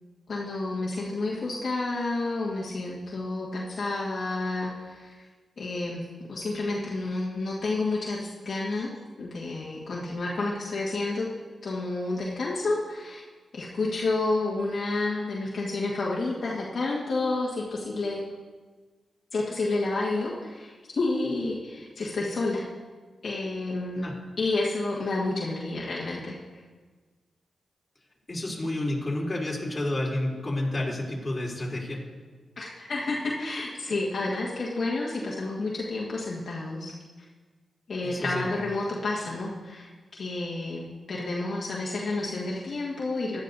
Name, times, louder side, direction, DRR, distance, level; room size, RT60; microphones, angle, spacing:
voice 1, 0.3-5.1 5.6-8.9 9.2-11.3 11.6-13.2 13.5-18.2 19.3-22.7 23.2-24.1 24.4-26.4 32.6-36.9 37.9-39.9 40.2-43.4, left 2 dB, 60° left, -6 dB, 1.6 m, -30 dB
voice 2, 28.3-32.0 38.0-38.4, left 1 dB, 20° left, -4 dB, 3.5 m, -30 dB
15.0 x 11.5 x 2.7 m, 1.4 s
cardioid pair, 75°, 0 cm